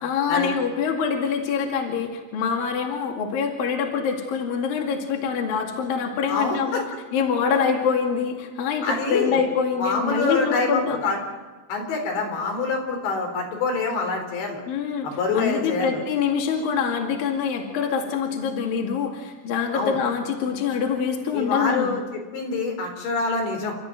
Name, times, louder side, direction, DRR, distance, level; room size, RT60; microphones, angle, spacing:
voice 1, 0.0-6.9 7.1-11.0 14.7-15.1 15.3-21.9, left 6 dB, 60° left, 2 dB, 3.8 m, -25 dB
voice 2, 6.3-6.8 8.8-9.4 9.8-11.2 11.7-14.6 15.0-16.0 19.7-20.0 21.3-23.8, left 3 dB, 90° left, 3 dB, 6.4 m, -26 dB
29.5 x 13.5 x 9.2 m, 1.3 s
omnidirectional pair, 5.0 m